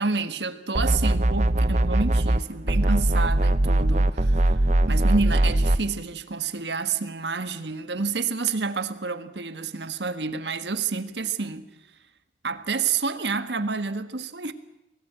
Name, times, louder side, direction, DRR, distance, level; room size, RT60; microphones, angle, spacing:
voice 1, 0.0-4.6 4.9-11.7 12.4-14.5, right 4 dB, 85° right, 1.5 m, -29 dB
sound 1, 0.7-2.4 2.7-5.8, right 1 dB, 40° right, 0.8 m, -21 dB
24.5 x 18.5 x 8.9 m
head